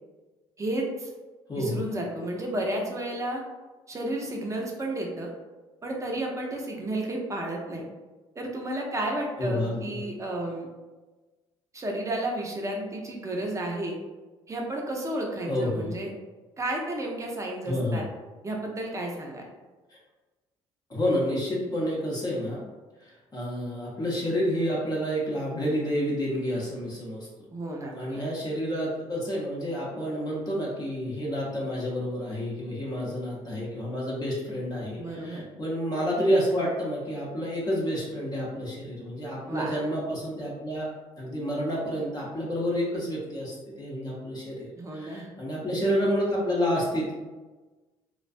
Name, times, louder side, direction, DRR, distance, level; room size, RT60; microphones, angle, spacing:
voice 1, 0.6-1.1 1.6-3.4 3.9-5.3 5.8-7.8 8.4-10.7 11.7-13.9 14.5-16.1 16.6-18.0 18.4-19.5 27.5-28.2 35.0-35.5 39.5-39.7 44.8-45.3, right 1 dB, 25° right, -1 dB, 0.6 m, -32 dB
voice 2, 9.4-10.0 15.5-15.9 17.6-18.1 19.9-20.0 20.9-22.7 23.0-27.3 27.9-40.9 41.2-47.1, equal, 30° left, -5 dB, 0.8 m, -29 dB
2.3 x 2.2 x 2.5 m, 1.2 s
supercardioid pair, 70°, 13 cm